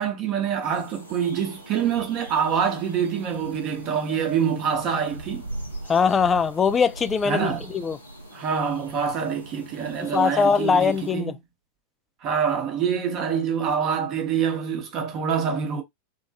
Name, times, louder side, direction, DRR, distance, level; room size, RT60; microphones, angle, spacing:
voice 1, 0.0-5.5 7.2-7.7 8.3-11.3 12.2-15.8, right 7 dB, 35° right, 0.9 m, -26 dB
sound 1, 0.6-11.1, right 1 dB, 90° left, 0.8 m, -40 dB
voice 2, 5.9-8.0 10.0-11.3, left 6 dB, 20° left, 0.3 m, -21 dB
3.0 x 2.2 x 2.6 m
figure-of-eight pair, 90°, 0 cm